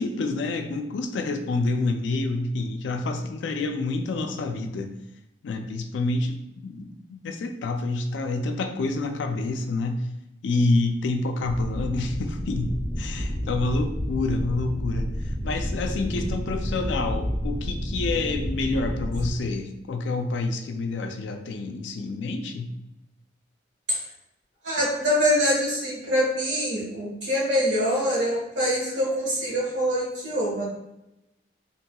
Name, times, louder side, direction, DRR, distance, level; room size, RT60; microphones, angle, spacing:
voice 1, 0.0-4.9 5.4-10.1 10.4-22.7, left 3 dB, 75° left, 6 dB, 0.3 m, -28 dB
sound 1, 11.4-19.3, equal, 20° left, 0.6 m, -30 dB
voice 2, 24.6-30.7, equal, 80° right, -6 dB, 1.3 m, -24 dB
3.0 x 2.8 x 2.2 m, 0.88 s
head